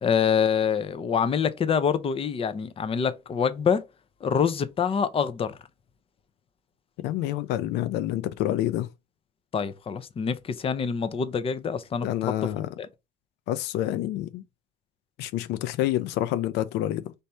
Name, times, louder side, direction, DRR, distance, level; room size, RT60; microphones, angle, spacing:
voice 1, 0.0-3.9 4.2-5.6 9.5-12.3 12.8-12.9, left 7 dB, 35° left, 0.6 m, -26 dB
voice 2, 7.0-8.9 12.0-12.7 13.5-14.4 15.2-17.1, left 13 dB, 90° left, 0.4 m, -28 dB
3.4 x 2.7 x 4.3 m
cardioid pair, 110°, 17 cm